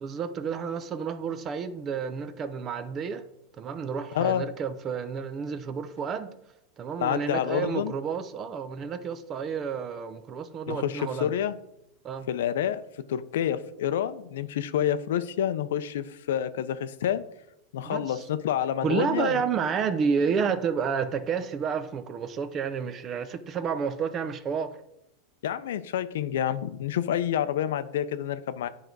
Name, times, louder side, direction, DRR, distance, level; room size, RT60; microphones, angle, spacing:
voice 1, 0.0-3.2 3.6-6.3 6.8-11.3 12.0-12.3 17.8-18.1 18.8-24.8, right 6 dB, 25° right, 12 dB, 0.5 m, -30 dB
voice 2, 4.1-4.5 7.0-7.9 10.7-11.6 12.3-17.2 17.7-19.4 25.4-28.7, left 10 dB, 90° left, 13 dB, 0.5 m, -28 dB
10.0 x 3.9 x 4.6 m, 0.80 s
supercardioid pair, 155°, 0 cm